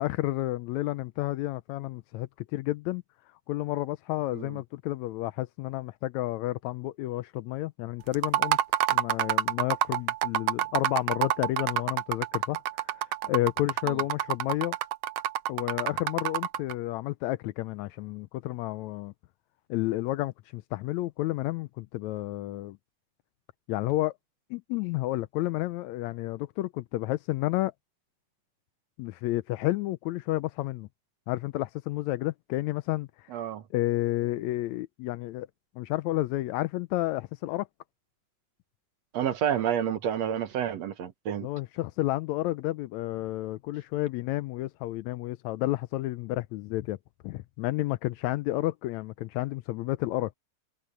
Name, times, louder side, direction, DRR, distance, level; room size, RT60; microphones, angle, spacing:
voice 1, 0.0-3.0 3.5-8.6 8.9-12.6 12.9-14.8 15.5-19.1 19.7-22.8 23.7-24.1 24.5-27.7 29.0-30.9 31.3-33.1 33.7-35.5 35.8-37.7 41.4-47.0 47.2-50.3, left 17 dB, 80° left, 1.7 m, -31 dB
sound 1, 8.1-16.7, right 12 dB, 85° right, 1.3 m, -28 dB
voice 2, 33.3-33.6 39.1-41.5, right 9 dB, 65° right, 2.0 m, -29 dB
omnidirectional pair, 3.7 m